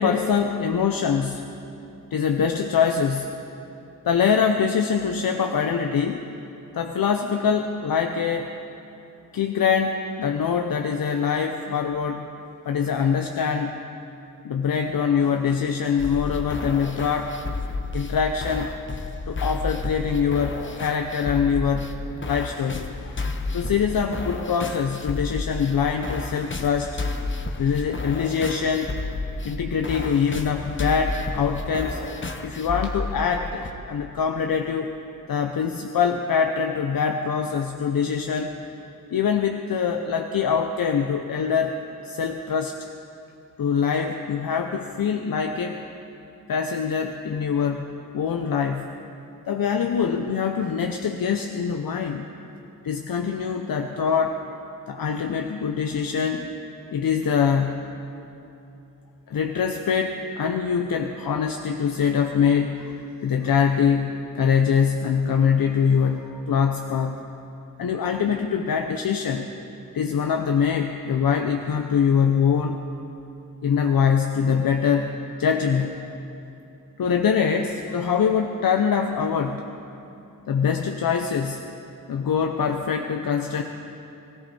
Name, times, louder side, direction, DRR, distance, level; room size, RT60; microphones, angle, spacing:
voice 1, 0.0-1.4 2.1-3.3 4.0-6.2 6.7-8.5 9.3-12.3 12.6-13.8 14.4-17.3 17.9-18.7 19.3-21.9 22.2-23.1 23.5-27.0 27.6-28.9 29.4-32.0 32.4-34.9 35.3-38.5 39.1-41.8 42.0-42.8 43.6-45.8 46.5-47.9 48.1-48.9 49.5-52.2 52.8-54.4 54.9-56.5 56.9-57.9 59.3-62.9 63.2-67.2 67.8-69.5 69.9-72.8 73.6-76.1 77.0-79.6 80.5-81.6 82.1-83.6, left 6 dB, 80° left, 5 dB, 0.8 m, -23 dB
sound 1, 16.0-33.7, left 3 dB, 35° left, 1.0 m, -31 dB
23.0 x 14.0 x 4.2 m, 2.9 s
wide cardioid pair, 110°, 34 cm